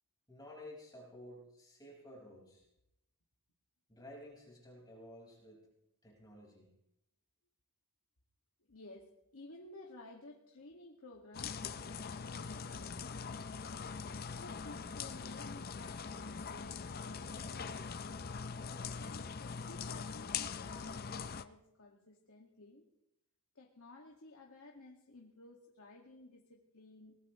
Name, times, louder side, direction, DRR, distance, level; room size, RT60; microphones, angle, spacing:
voice 1, 0.3-2.7 3.9-5.6 6.0-6.7, left 1 dB, 20° left, -3 dB, 5.1 m, -53 dB
voice 2, 8.7-13.6 14.4-18.2 19.0-22.9 23.6-27.2, left 2 dB, 80° left, -1 dB, 2.0 m, -55 dB
sound 1, 11.3-21.4, left 5 dB, 45° left, 0.6 m, -42 dB
22.5 x 20.0 x 3.1 m, 0.84 s
head